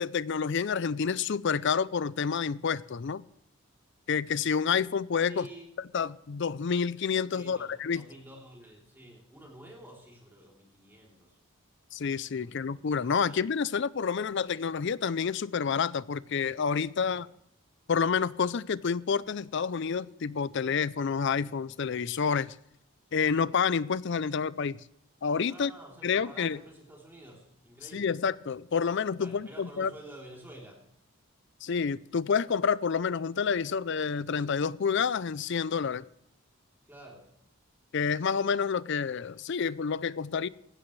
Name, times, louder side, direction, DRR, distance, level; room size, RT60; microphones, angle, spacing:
voice 1, 0.0-3.2 4.1-5.5 5.9-8.0 11.9-17.3 17.9-22.5 23.1-24.8 25.2-25.7 26.0-26.6 27.9-29.9 31.6-36.1 37.9-40.5, left 6 dB, 55° left, 0.4 m, -29 dB
voice 2, 5.3-5.7 7.3-11.4 12.4-13.5 16.9-17.2 25.5-28.2 29.2-30.9 36.9-37.3, right 1 dB, 10° right, 3.3 m, -50 dB
19.0 x 16.0 x 3.2 m
head